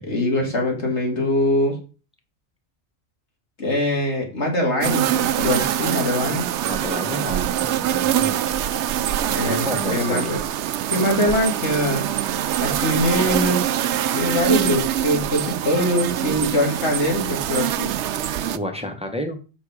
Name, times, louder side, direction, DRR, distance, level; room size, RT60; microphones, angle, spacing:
voice 1, 0.0-1.8 3.6-6.5 9.3-10.4 10.9-12.0 12.6-13.8 14.1-17.9, left 1 dB, 90° left, 0 dB, 2.9 m, -23 dB
sound 1, 4.8-18.6, right 11 dB, 90° right, 0.9 m, -24 dB
voice 2, 6.6-8.4 9.5-10.3 18.5-19.4, equal, 5° right, 4 dB, 1.2 m, -30 dB
7.4 x 6.0 x 5.0 m, 0.34 s
omnidirectional pair, 1.1 m